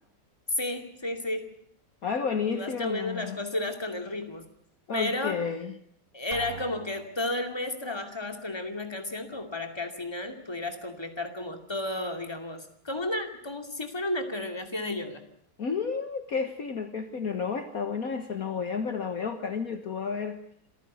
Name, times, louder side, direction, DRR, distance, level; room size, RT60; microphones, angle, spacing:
voice 1, 0.5-1.5 2.5-4.5 4.9-5.4 6.1-15.2, left 2 dB, 15° left, 6 dB, 2.5 m, -33 dB
voice 2, 2.0-3.4 4.9-5.8 15.6-20.4, left 5 dB, 50° left, 8 dB, 1.7 m, -31 dB
Drum, 6.3-7.5, right 5 dB, 35° right, 1.4 m, -44 dB
26.5 x 15.0 x 9.5 m, 0.67 s
omnidirectional pair, 2.0 m